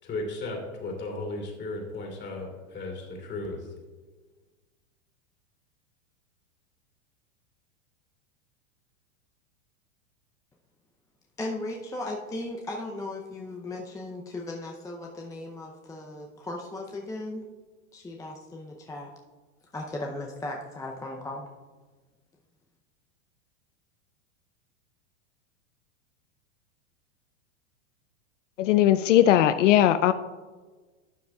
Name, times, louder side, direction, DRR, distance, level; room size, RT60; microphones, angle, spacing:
voice 1, 0.0-3.7, left 2 dB, 30° left, 1 dB, 2.7 m, -35 dB
voice 2, 11.4-17.4 17.9-19.1 19.7-21.5, left 2 dB, 10° left, 0 dB, 0.6 m, -36 dB
voice 3, 28.6-30.1, left 12 dB, 75° left, 11 dB, 0.5 m, -19 dB
12.0 x 7.7 x 2.3 m, 1.3 s
hypercardioid pair, 120°, 37 cm